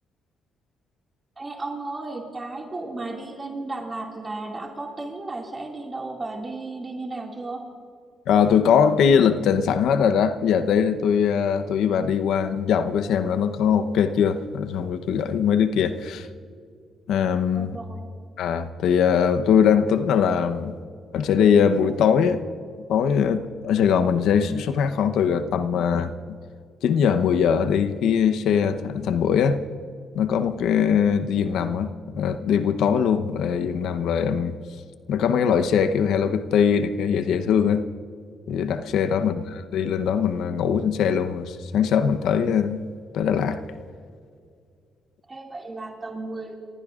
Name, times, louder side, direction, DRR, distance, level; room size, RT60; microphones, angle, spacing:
voice 1, 1.4-7.6 17.5-18.1 39.1-39.4 45.3-46.5, right 2 dB, 25° right, 2.2 m, -34 dB
voice 2, 8.3-16.3 17.1-17.8 18.4-20.8 21.1-22.4 22.9-26.4 26.8-29.6 30.1-34.6 35.1-37.8 38.5-42.8 43.1-43.6, left 7 dB, 80° left, 0.8 m, -21 dB
29.0 x 15.5 x 2.5 m
cardioid pair, 90°, 0 cm